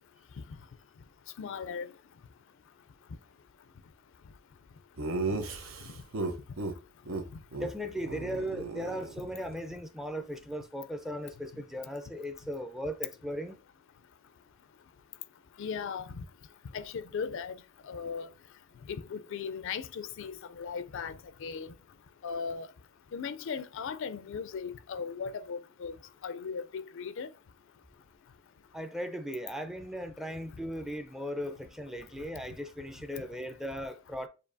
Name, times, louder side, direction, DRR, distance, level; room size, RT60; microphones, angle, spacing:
voice 1, 1.4-1.9 15.6-16.1 16.7-17.5 17.9-18.3 18.9-21.7 22.2-22.7 23.1-26.0 26.2-27.3, left 6 dB, 65° left, 0.4 m, -37 dB
Laughter, 5.0-6.7 7.1-7.2 7.5-7.7 8.0-9.5, right 3 dB, 85° right, 0.9 m, -35 dB
voice 2, 7.5-13.6 28.7-34.3, equal, ahead, 0.4 m, -37 dB
6.8 x 2.7 x 2.6 m
head